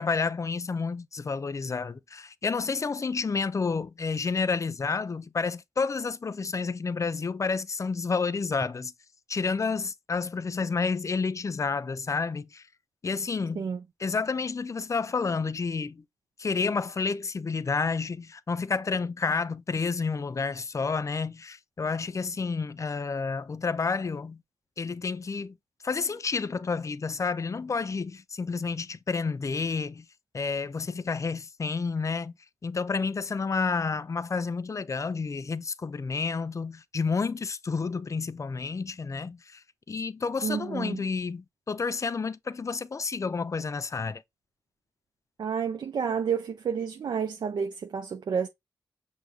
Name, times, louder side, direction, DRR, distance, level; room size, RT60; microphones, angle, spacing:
voice 1, 0.0-8.9 9.3-12.6 13.0-13.6 14.0-16.0 16.4-24.4 24.8-25.6 25.8-30.1 30.3-32.3 32.6-39.6 39.9-44.2, left 4 dB, 40° left, 0.5 m, -30 dB
voice 2, 40.4-41.0 45.4-48.5, right 6 dB, 70° right, 0.5 m, -30 dB
6.2 x 2.2 x 3.4 m
supercardioid pair, 40°, 8 cm